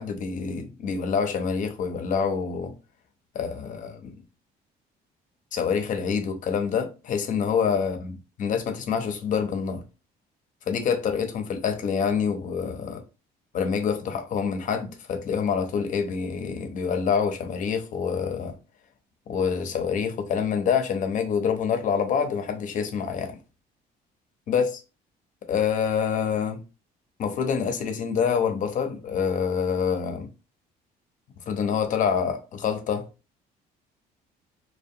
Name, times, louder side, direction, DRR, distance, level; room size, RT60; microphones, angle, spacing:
voice 1, 0.0-2.7 3.3-4.2 5.5-8.1 8.4-9.8 10.7-13.0 13.5-18.5 19.3-23.4 24.5-24.8 25.5-26.6 27.2-30.3 31.5-33.1, left 6 dB, 50° left, 0.5 m, -26 dB
2.6 x 2.1 x 2.6 m
cardioid pair, 110°, 17 cm